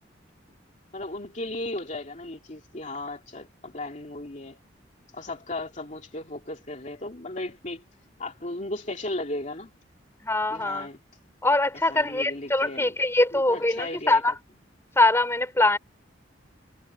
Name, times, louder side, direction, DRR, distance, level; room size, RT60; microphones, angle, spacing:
voice 1, 0.9-4.6 5.1-7.8 8.2-9.7 10.5-11.0 11.9-13.0 13.3-14.2, left 2 dB, 40° left, 2.7 m, -35 dB
voice 2, 10.2-10.9 11.4-14.3 15.0-15.8, left 2 dB, 15° left, 4.0 m, -23 dB
head